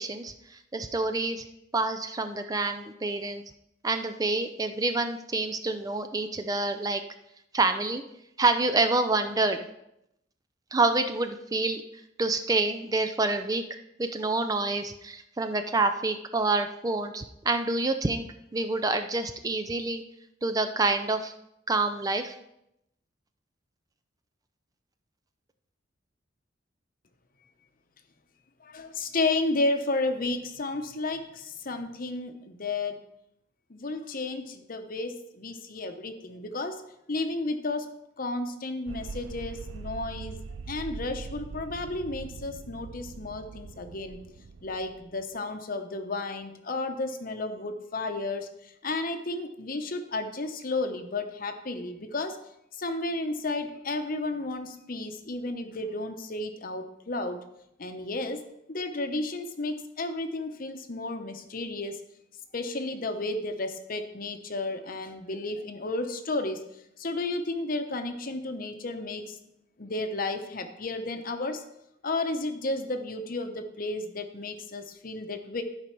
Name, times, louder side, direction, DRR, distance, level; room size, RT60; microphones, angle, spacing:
voice 1, 0.0-1.4 1.7-3.4 3.8-7.0 7.5-8.0 8.4-9.7 10.7-11.8 12.2-13.6 14.0-18.2 18.5-20.0 20.4-21.3 21.7-22.3, right 3 dB, 20° right, 8 dB, 0.4 m, -27 dB
voice 2, 28.6-33.0 33.7-36.8 37.1-37.9 38.2-40.4 40.7-44.2 44.6-52.4 52.8-57.4 57.8-58.4 58.7-62.0 62.5-66.6 67.0-69.4 69.8-71.6 72.0-75.6, left 2 dB, 45° left, 7 dB, 0.9 m, -32 dB
sound 1, 38.9-45.3, right 4 dB, 90° right, 0.5 m, -42 dB
12.0 x 5.3 x 4.5 m, 0.82 s
head